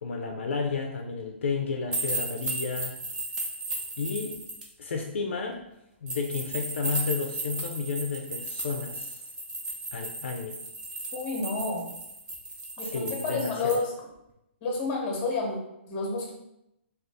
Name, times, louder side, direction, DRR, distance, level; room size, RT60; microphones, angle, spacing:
voice 1, 0.0-2.9 4.0-4.4 4.8-5.6 6.0-9.2 9.9-10.6 12.8-13.8, left 5 dB, 75° left, 2 dB, 0.4 m, -32 dB
sound 1, 1.9-4.6 6.1-13.7, right 2 dB, 10° right, 0.6 m, -35 dB
voice 2, 11.1-11.9 12.8-13.9 14.6-15.6 15.9-16.3, left 3 dB, 30° left, 0 dB, 0.9 m, -30 dB
2.5 x 2.4 x 3.3 m, 0.84 s
hypercardioid pair, 140°, 7 cm